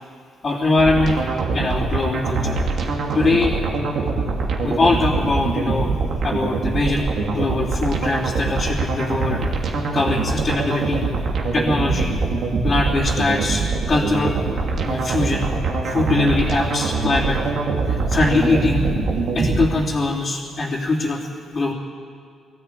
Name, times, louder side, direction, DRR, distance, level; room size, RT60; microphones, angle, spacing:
voice 1, 0.4-1.1 1.5-2.6 3.1-3.6 4.6-5.9 6.2-9.7 9.9-11.1 11.5-12.2 12.6-14.4 14.8-15.5 15.8-17.4 17.8-18.8 19.3-21.3 21.5-21.7, left 3 dB, 40° left, -6 dB, 3.1 m, -22 dB
sound 1, 0.8-19.7, right 3 dB, 65° right, 2.8 m, -23 dB
20.0 x 14.5 x 9.3 m, 2.1 s
cardioid pair, 90°, 0 cm